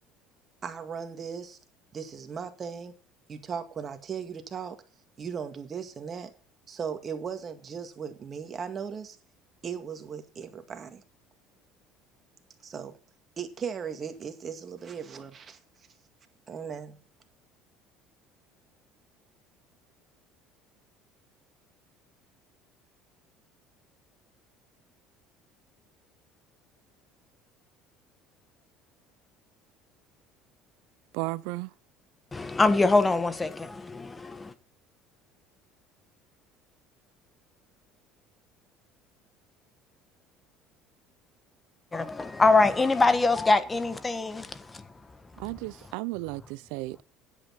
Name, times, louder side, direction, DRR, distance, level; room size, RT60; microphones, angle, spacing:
voice 1, 0.6-1.6 1.9-2.9 3.3-4.8 5.2-6.3 6.7-9.2 9.6-11.0 12.6-12.9 13.4-15.6 16.5-17.0, right 6 dB, 35° right, 2.0 m, -37 dB
voice 2, 31.1-31.7 45.4-47.0, right 21 dB, 80° right, 0.5 m, -34 dB
voice 3, 32.3-34.5 41.9-44.9, left 3 dB, 20° left, 1.4 m, -24 dB
9.9 x 8.3 x 5.8 m
supercardioid pair, 95°, 0 cm